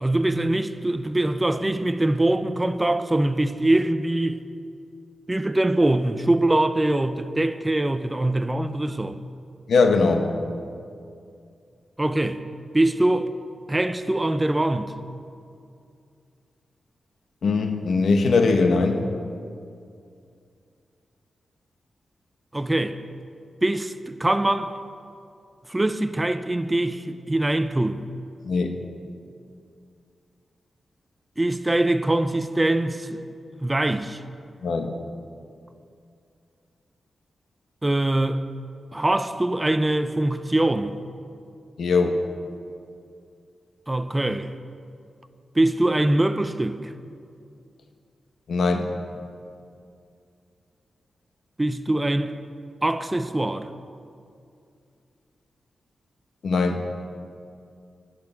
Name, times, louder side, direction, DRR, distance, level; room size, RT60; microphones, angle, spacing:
voice 1, 0.0-4.4 5.3-9.2 12.0-12.4 12.7-13.3 13.7-14.9 22.5-23.0 23.6-24.7 25.7-28.0 31.4-33.3 33.6-34.2 37.8-38.5 38.9-41.0 43.9-44.5 45.5-46.9 51.6-52.4 52.8-53.7, right 1 dB, 15° right, 0.5 m, -23 dB
voice 2, 9.7-10.3 17.4-19.0 28.4-28.7 34.6-34.9 41.8-42.2 48.5-48.9 56.4-56.8, left 4 dB, 75° left, 1.0 m, -20 dB
11.0 x 10.5 x 5.9 m
wide cardioid pair, 100°, 0 cm